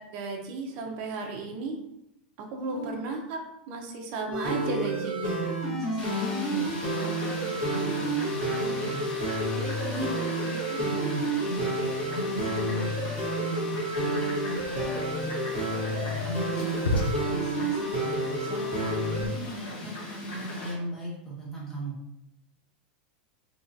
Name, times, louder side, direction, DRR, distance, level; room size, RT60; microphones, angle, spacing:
voice 1, 0.1-1.8 2.4-3.4 3.7-5.4 9.9-10.1, right 3 dB, 35° right, 2 dB, 0.6 m, -34 dB
voice 2, 2.5-3.1 5.7-9.1 9.5-12.9 13.4-15.3 16.0-22.0, right 1 dB, 10° left, -7 dB, 0.9 m, -38 dB
sound 1, 4.3-19.3, right 1 dB, 25° left, 1.4 m, -30 dB
Fowl, 6.0-20.7, left 2 dB, 55° left, 1.1 m, -40 dB
Stupid Falls, 14.6-19.7, left 1 dB, 80° left, 0.7 m, -35 dB
3.7 x 2.9 x 2.6 m, 0.83 s
supercardioid pair, 180°, 5 cm